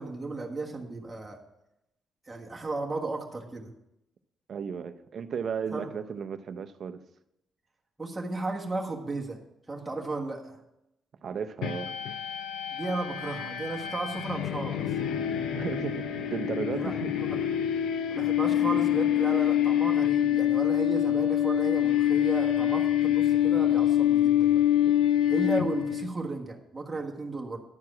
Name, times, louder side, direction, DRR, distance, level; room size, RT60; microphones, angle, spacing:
voice 1, 0.0-1.4 2.3-3.7 5.7-5.9 8.0-9.4 9.7-10.6 12.7-14.9 16.7-17.4 18.1-24.6 25.3-27.6, right 3 dB, 15° right, -1 dB, 1.5 m, -34 dB
voice 2, 4.5-7.0 11.2-11.9 15.5-17.1, right 6 dB, 55° right, 10 dB, 0.6 m, -34 dB
sound 1, 11.6-26.1, left 11 dB, 85° left, 0.6 m, -26 dB
11.0 x 4.7 x 7.4 m, 0.87 s
cardioid pair, 90°, 0 cm